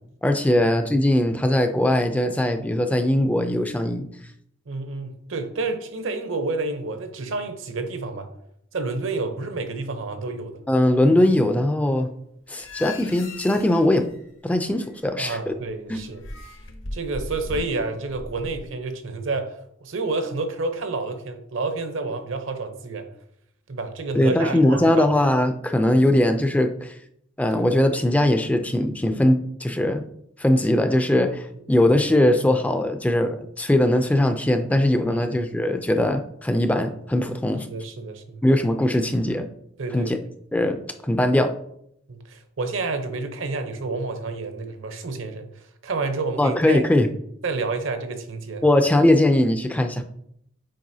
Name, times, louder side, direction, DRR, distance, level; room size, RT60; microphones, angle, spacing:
voice 1, 0.2-4.1 10.7-12.1 12.5-14.1 14.4-15.5 15.9-16.0 24.1-26.9 27.4-30.0 30.4-37.7 38.4-39.5 39.9-40.2 40.5-40.8 41.0-41.5 46.4-47.1 48.6-50.0, left 1 dB, 5° left, 7 dB, 0.4 m, -20 dB
voice 2, 4.7-8.3 8.7-10.5 15.2-16.2 16.9-19.5 19.8-23.1 23.7-25.1 27.5-27.6 35.1-35.3 37.7-38.4 39.8-40.1 42.1-45.5 45.8-46.8 47.4-48.6, right 3 dB, 65° right, 8 dB, 0.8 m, -29 dB
sound 1, 12.5-15.2 15.5-18.7, left 2 dB, 65° left, 0.9 m, -38 dB
7.6 x 4.7 x 2.7 m, 0.72 s
head